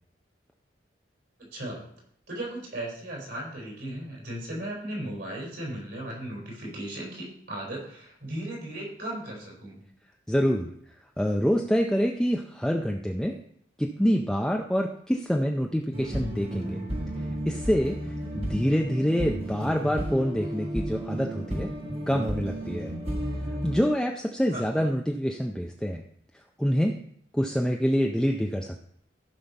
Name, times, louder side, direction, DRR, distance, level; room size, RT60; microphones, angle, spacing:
voice 1, 1.4-1.8 2.3-9.8 24.5-24.9, right 1 dB, 65° right, -3 dB, 4.0 m, -36 dB
voice 2, 10.3-10.7 11.2-13.4 13.8-16.8 17.2-18.0 18.3-21.7 22.1-22.9 23.6-26.0 26.6-27.0 27.3-28.8, equal, 5° left, 1 dB, 0.5 m, -26 dB
sound 1, 15.9-23.8, right 1 dB, 35° right, 1.5 m, -32 dB
15.0 x 5.6 x 4.0 m, 0.66 s
head